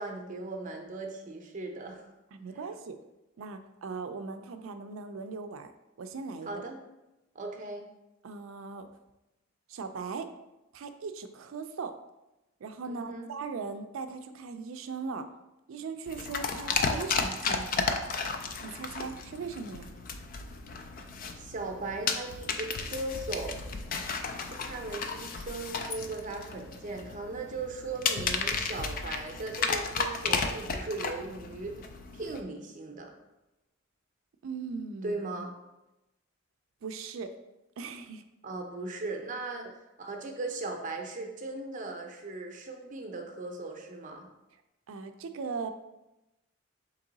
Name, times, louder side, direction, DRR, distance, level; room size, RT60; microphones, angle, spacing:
voice 1, 0.0-2.1 6.5-6.8 7.3-7.8 12.9-13.3 21.4-23.6 24.4-31.8 32.1-33.1 35.0-35.5 38.4-39.7 40.0-44.3, right 3 dB, 40° right, 3 dB, 0.6 m, -38 dB
voice 2, 2.3-3.0 3.4-5.7 6.0-6.6 8.2-8.9 9.7-10.3 10.7-12.0 12.6-15.3 15.7-18.0 18.6-19.9 34.4-35.2 36.8-37.3 37.8-38.2 44.9-45.7, right 5 dB, 85° right, 8 dB, 0.4 m, -39 dB
sound 1, 16.1-32.4, left 4 dB, 45° left, 0.3 m, -34 dB
3.8 x 3.0 x 3.9 m, 0.96 s
head